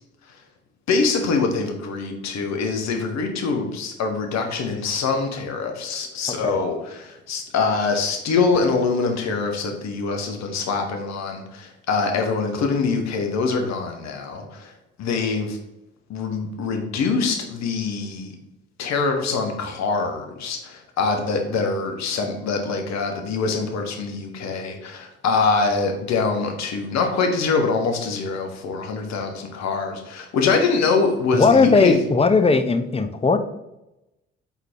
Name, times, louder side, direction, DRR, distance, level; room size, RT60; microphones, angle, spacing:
voice 1, 0.9-14.7 15.0-15.6 16.1-18.3 18.8-32.0, left 4 dB, 55° left, 4 dB, 1.3 m, -24 dB
voice 2, 31.3-33.4, left 4 dB, 20° left, 8 dB, 0.7 m, -17 dB
5.4 x 4.0 x 4.6 m, 0.91 s
hypercardioid pair, 55°, 32 cm